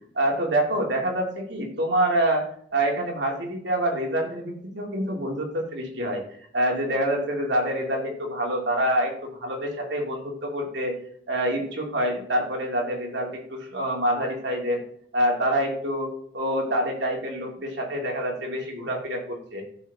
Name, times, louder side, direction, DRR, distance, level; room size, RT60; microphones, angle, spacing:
voice 1, 0.1-2.4 2.7-6.2 6.5-11.0 11.3-14.8 15.1-19.6, right 1 dB, 70° right, 0 dB, 2.7 m, -26 dB
15.0 x 6.5 x 3.7 m, 0.64 s
head